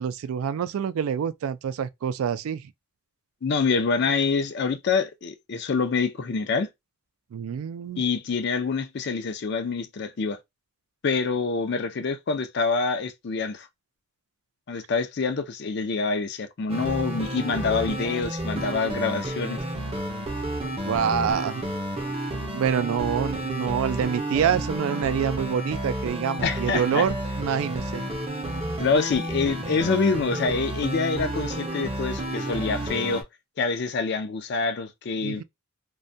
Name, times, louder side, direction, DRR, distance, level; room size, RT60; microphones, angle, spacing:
voice 1, 0.0-2.7 7.3-8.0 20.9-21.6 22.5-28.0 35.2-35.4, right 8 dB, 85° right, 0.3 m, -26 dB
voice 2, 3.4-6.7 8.0-10.4 11.0-13.7 14.7-19.6 26.4-27.1 28.8-33.2 33.6-35.4, left 4 dB, 55° left, 0.4 m, -26 dB
sound 1, 16.7-33.2, right 1 dB, 30° right, 0.5 m, -31 dB
2.2 x 2.1 x 2.6 m
head